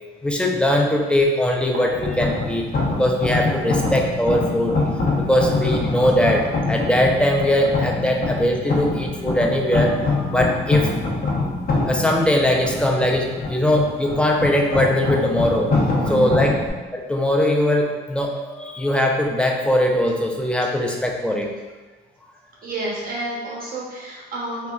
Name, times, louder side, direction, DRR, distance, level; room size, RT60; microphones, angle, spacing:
voice 1, 0.2-2.7 3.0-4.7 5.1-10.9 11.9-15.7 16.1-16.6 16.9-21.5, left 1 dB, 5° left, 1 dB, 0.3 m, -20 dB
sound 1, 1.9-16.7, left 3 dB, 45° left, 0.7 m, -24 dB
voice 2, 15.9-16.4 22.6-24.7, right 1 dB, 45° right, -4 dB, 0.9 m, -30 dB
3.5 x 2.1 x 2.2 m, 1.3 s
cardioid pair, 90°, 20 cm